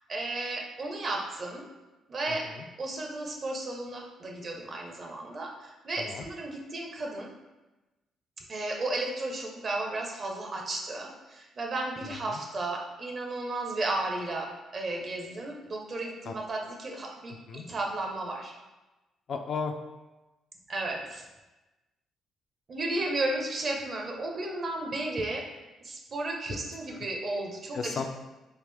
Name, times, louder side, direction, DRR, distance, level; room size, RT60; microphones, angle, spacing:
voice 1, 0.1-1.6 2.1-2.5 2.8-7.3 8.5-18.5 20.7-21.2 22.7-25.4 25.8-27.8, right 2 dB, 45° right, 1 dB, 0.7 m, -34 dB
voice 2, 2.3-2.7 6.0-6.3 12.0-12.4 16.3-16.4 17.5-17.6 19.3-19.7 26.5-26.6 26.9-27.0 27.7-28.0, left 5 dB, 55° left, 5 dB, 0.3 m, -35 dB
3.5 x 2.5 x 3.4 m, 1.1 s
cardioid pair, 90°, 0 cm